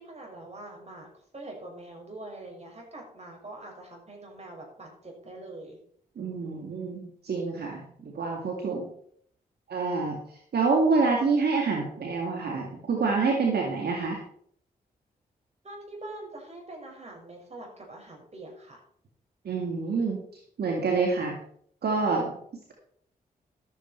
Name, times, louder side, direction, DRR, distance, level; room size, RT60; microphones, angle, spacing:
voice 1, 0.0-5.8 15.6-18.8, right 2 dB, 40° right, 0 dB, 5.9 m, -44 dB
voice 2, 6.2-8.9 9.7-10.2 10.5-14.2 19.5-20.2 20.6-21.3 21.8-22.3, right 4 dB, 70° right, 0 dB, 2.1 m, -27 dB
12.5 x 8.4 x 4.4 m, 0.64 s
supercardioid pair, 45°, 17 cm